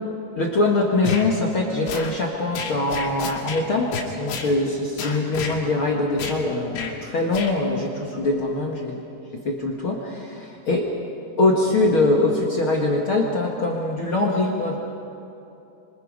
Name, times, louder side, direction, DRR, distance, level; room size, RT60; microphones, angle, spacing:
voice 1, 0.4-9.0 9.3-10.9 11.4-14.8, left 2 dB, 60° left, -1 dB, 1.3 m, -23 dB
sound 1, 1.0-1.3 1.9-2.1 2.5-3.6 3.9-4.5 5.0-5.6 6.2-6.4 6.7-6.9 7.3-7.5, left 5 dB, 85° left, 4.6 m, -30 dB
27.0 x 25.0 x 5.3 m, 2.8 s
omnidirectional pair, 5.3 m